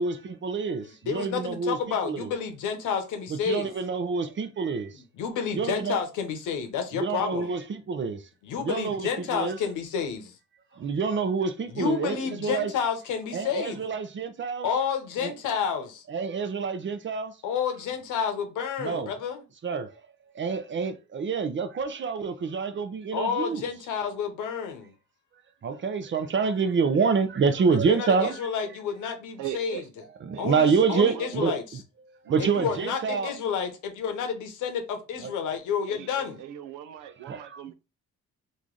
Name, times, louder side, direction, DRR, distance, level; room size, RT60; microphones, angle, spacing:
voice 1, 0.0-2.3 3.3-5.0 5.5-6.0 6.9-8.3 8.6-9.6 10.7-12.7 13.3-14.7 15.2-15.3 16.1-17.4 18.8-19.1 19.6-19.9 20.3-23.6 25.6-28.5 30.3-31.8 32.2-33.3 35.2-35.3 37.3-37.6, right 5 dB, 40° right, 0.6 m, -27 dB
voice 2, 1.1-3.7 5.2-7.5 8.4-10.3 11.7-13.9 14.6-16.0 17.4-19.4 23.1-24.9 27.9-29.8 30.4-31.6 32.4-36.4, left 7 dB, 90° left, 0.9 m, -30 dB
voice 3, 29.4-29.9 30.3-31.6 32.2-32.8 35.9-37.7, right 10 dB, 85° right, 0.5 m, -39 dB
3.1 x 2.5 x 3.8 m
cardioid pair, 90°, 30 cm